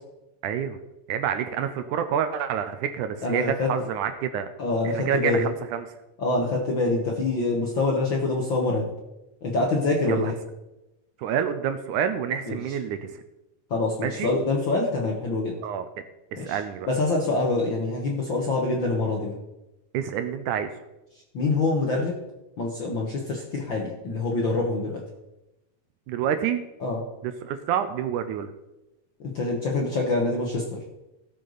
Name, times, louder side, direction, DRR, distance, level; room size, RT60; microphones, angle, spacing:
voice 1, 0.4-0.8 1.1-4.5 4.8-5.9 10.1-10.3 11.2-13.2 14.0-14.3 15.6-15.9 16.3-16.9 19.9-20.7 26.1-26.6 27.2-28.5, right 8 dB, 75° right, 9 dB, 2.0 m, -28 dB
voice 2, 3.2-3.7 4.6-5.5 6.2-8.9 9.4-10.4 12.5-12.6 13.7-15.5 16.4-16.6 16.9-19.3 21.3-22.1 22.6-25.0 26.8-27.0 29.2-30.8, left 2 dB, 55° left, -1 dB, 1.3 m, -25 dB
17.0 x 6.7 x 4.0 m, 0.96 s
omnidirectional pair, 3.9 m